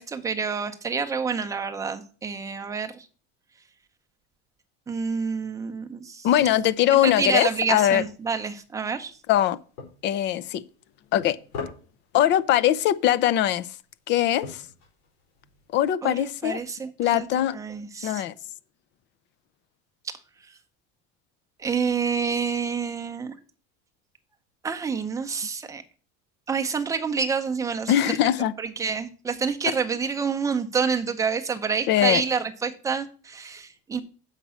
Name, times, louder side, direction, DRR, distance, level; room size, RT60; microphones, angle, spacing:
voice 1, 0.0-3.1 4.9-6.3 6.9-9.1 16.0-17.3 17.5-18.2 20.0-20.1 21.6-23.3 24.6-25.8 26.5-28.2 28.6-34.0, right 5 dB, 10° right, 0.6 m, -28 dB
voice 2, 6.2-8.0 9.3-9.6 10.0-10.6 11.1-11.4 12.1-13.7 14.1-14.6 15.7-16.6 17.0-17.6 18.0-18.3 27.9-28.5 31.9-32.2, left 12 dB, 35° left, 0.5 m, -21 dB
sound 1, 6.4-15.7, left 5 dB, 90° left, 4.8 m, -45 dB
7.3 x 5.3 x 7.0 m
cardioid pair, 180°, 32 cm